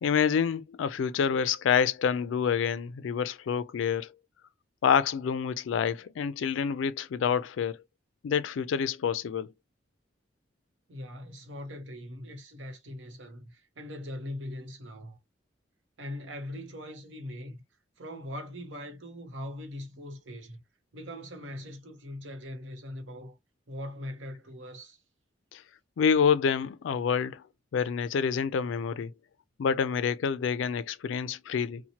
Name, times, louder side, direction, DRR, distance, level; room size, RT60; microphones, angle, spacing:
voice 1, 0.0-4.1 4.8-7.8 8.2-9.5 25.5-25.6 26.0-27.4 27.7-29.1 29.6-31.8, left 7 dB, 80° left, 0.3 m, -27 dB
voice 2, 10.9-15.2 16.0-17.6 18.0-20.6 20.9-23.4 23.7-25.0, left 1 dB, 80° right, 0.7 m, -41 dB
2.8 x 2.1 x 2.8 m
head